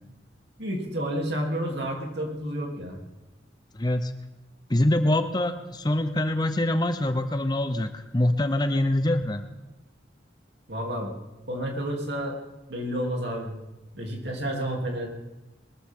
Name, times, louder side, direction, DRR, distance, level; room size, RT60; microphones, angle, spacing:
voice 1, 0.6-3.0 10.7-11.2 11.5-12.4 12.7-13.5 13.9-15.1, equal, 65° right, 1 dB, 3.0 m, -30 dB
voice 2, 3.8-4.1 4.7-9.4, left 1 dB, 20° left, 9 dB, 0.7 m, -24 dB
21.5 x 13.5 x 3.7 m, 1.1 s
head